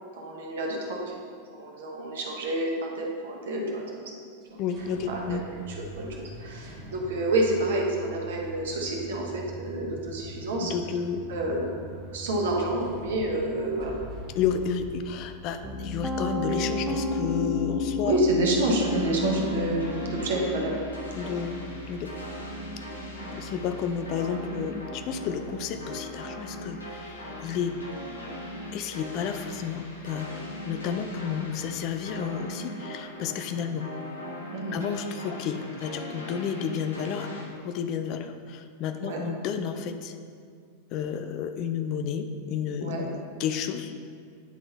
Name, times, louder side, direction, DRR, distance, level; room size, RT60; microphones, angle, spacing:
voice 1, 0.1-1.1 1.5-3.8 5.1-10.7 11.3-11.7 12.1-13.9 18.0-20.8 21.2-21.3 22.9-23.4 34.5-34.8 39.0-39.2 42.8-43.0, right 1 dB, 60° right, 0 dB, 1.1 m, -28 dB
sound 1, 4.4-16.1, right 1 dB, 30° right, 1.7 m, -43 dB
voice 2, 4.6-5.4 10.6-11.2 14.4-18.2 21.1-21.6 21.9-22.1 23.4-27.8 28.7-33.9 34.7-37.3 37.6-40.1 40.9-43.9, left 7 dB, 40° left, 8 dB, 0.4 m, -31 dB
Piano, 15.6-27.5, left 3 dB, ahead, 0.6 m, -34 dB
sound 2, 18.5-37.4, left 1 dB, 75° left, 1.4 m, -40 dB
9.4 x 3.9 x 3.9 m, 2.2 s
figure-of-eight pair, 90°, 0 cm